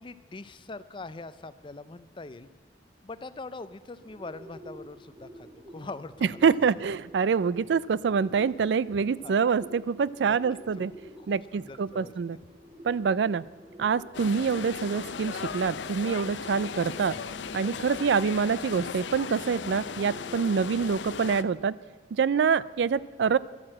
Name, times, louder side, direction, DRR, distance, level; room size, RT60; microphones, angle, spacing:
voice 1, 0.0-2.5 3.0-6.4 8.9-9.3 10.3-10.4 10.8-10.9 11.2-12.1, left 3 dB, 30° left, 14 dB, 0.5 m, -42 dB
Bird, 4.0-21.0, equal, 30° right, 1.4 m, -50 dB
voice 2, 6.4-10.9 11.3-12.4 12.8-13.4 13.8-17.2 17.5-21.7 22.1-23.4, right 6 dB, 75° right, 20 dB, 0.4 m, -26 dB
sound 1, 14.1-21.4, left 5 dB, 85° left, 0.6 m, -37 dB
12.5 x 9.0 x 7.5 m, 1.4 s
head